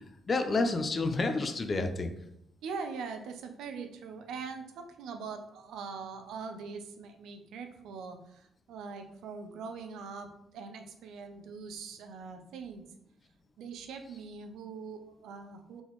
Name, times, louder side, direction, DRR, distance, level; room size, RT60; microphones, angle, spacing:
voice 1, 0.0-2.1, left 3 dB, 40° left, 6 dB, 0.6 m, -30 dB
voice 2, 2.6-12.9 13.6-15.8, right 5 dB, 80° right, 6 dB, 0.5 m, -42 dB
3.9 x 3.8 x 3.1 m, 0.76 s
supercardioid pair, 60°, 0 cm